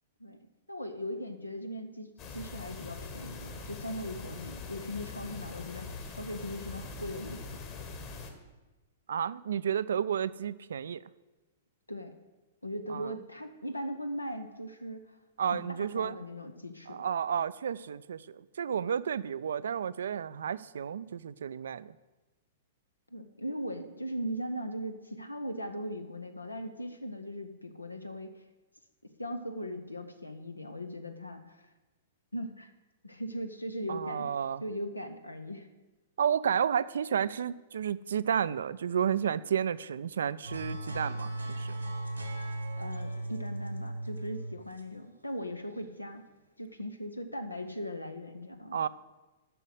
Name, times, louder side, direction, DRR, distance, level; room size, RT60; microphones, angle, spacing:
voice 1, 0.7-7.4 11.9-12.1 12.6-17.0 23.1-28.3 29.0-31.7 32.3-32.7 33.0-34.3 34.6-35.7 42.8-46.2 46.6-48.8, equal, 85° left, 8 dB, 0.7 m, -39 dB
sound 1, 2.2-8.3, left 4 dB, 35° left, 1.5 m, -43 dB
voice 2, 9.1-11.0 12.9-13.1 15.4-16.2 16.9-22.0 33.9-34.6 36.2-41.7 48.7-48.9, right 8 dB, 60° right, 18 dB, 0.3 m, -31 dB
sound 2, 40.4-45.8, right 1 dB, 85° right, 1.3 m, -37 dB
7.8 x 6.2 x 8.0 m, 1.1 s
figure-of-eight pair, 105°, 0 cm